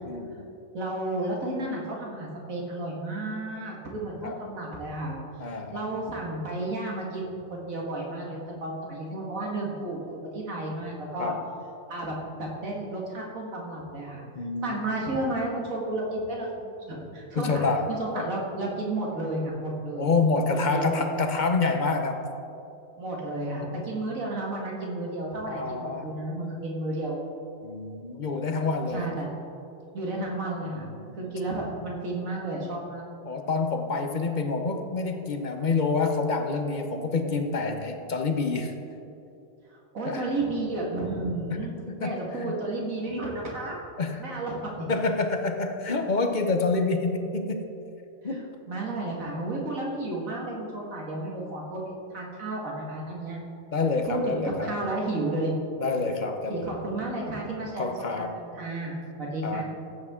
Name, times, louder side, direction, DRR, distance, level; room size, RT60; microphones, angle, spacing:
voice 1, 0.0-0.5 4.2-4.4 5.4-5.8 11.2-11.4 14.4-14.9 17.4-17.9 18.2-18.3 20.0-22.2 25.5-26.1 27.6-29.1 30.8-31.3 33.2-38.7 40.0-40.3 41.5-41.6 41.9-42.6 44.0-44.2 44.9-47.6 48.2-48.4 53.7-54.8 55.8-56.7 57.8-58.3 59.4-59.6, left 3 dB, 40° left, 6 dB, 0.8 m, -27 dB
voice 2, 0.7-5.2 5.7-10.0 10.3-11.3 11.9-14.2 14.6-20.1 20.5-21.0 23.0-27.2 28.9-29.4 29.9-30.9 31.1-33.0 39.7-41.7 42.0-43.8 44.2-44.9 48.2-48.4 48.7-51.8 52.1-53.4 54.0-55.5 56.5-57.9 58.2-59.6, right 2 dB, 75° right, -2 dB, 2.3 m, -32 dB
16.0 x 8.4 x 3.7 m, 2.8 s
omnidirectional pair, 1.4 m